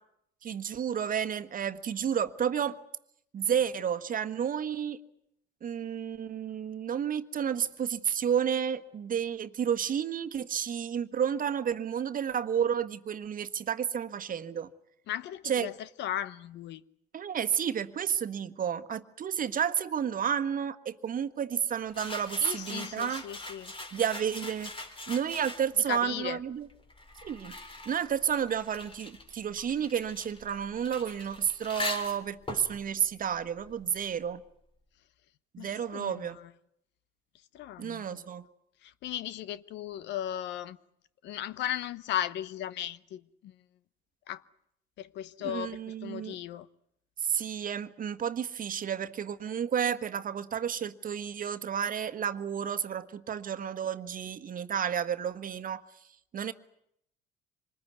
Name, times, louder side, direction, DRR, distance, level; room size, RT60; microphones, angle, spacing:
voice 1, 0.4-2.8 3.3-5.0 5.6-14.7 15.4-15.7 17.1-23.2 23.9-24.7 25.1-26.7 27.2-27.5 27.8-34.4 35.5-36.4 37.8-38.5 45.4-46.4 47.2-55.8 56.3-56.5, right 8 dB, 45° right, 1.4 m, -31 dB
voice 2, 15.1-16.8 22.4-23.7 25.9-26.4 35.6-36.5 37.5-38.3 38.8-40.8 41.2-43.6 44.3-44.4 45.0-46.7, left 11 dB, 70° left, 0.9 m, -37 dB
sound 1, 21.9-25.9 26.7-34.1, left 2 dB, 25° left, 3.5 m, -42 dB
25.5 x 20.5 x 9.5 m
supercardioid pair, 75°, 19 cm